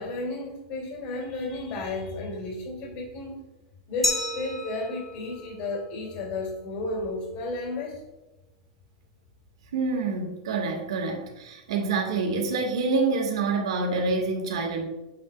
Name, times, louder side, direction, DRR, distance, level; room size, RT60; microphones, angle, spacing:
voice 1, 0.0-3.4 3.9-8.0, left 2 dB, 45° left, 0 dB, 2.7 m, -33 dB
Glass, 4.0-6.8, left 1 dB, 5° left, 1.3 m, -33 dB
voice 2, 9.7-14.8, right 3 dB, 85° right, 2 dB, 2.0 m, -27 dB
8.1 x 7.8 x 2.5 m, 1.0 s
supercardioid pair, 145°, 3 cm